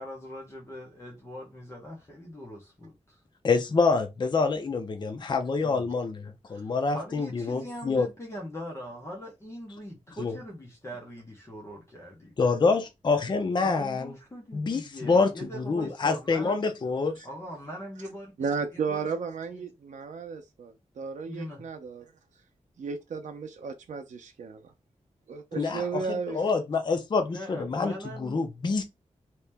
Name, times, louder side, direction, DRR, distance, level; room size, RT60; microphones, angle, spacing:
voice 1, 0.0-3.2 5.6-5.9 6.5-12.4 13.6-16.6 17.2-19.1 19.5-19.6 21.3-21.6 27.3-28.4, equal, 20° left, 1.0 m, -41 dB
voice 2, 3.4-8.1 10.2-10.3 12.4-14.1 14.5-15.3 15.6-17.2 25.5-27.9 28.2-28.8, left 4 dB, 40° left, 0.5 m, -26 dB
voice 3, 18.4-22.1 22.8-24.7 25.3-26.4, right 5 dB, 85° right, 0.4 m, -34 dB
2.9 x 2.8 x 3.4 m
wide cardioid pair, 160°, 12 cm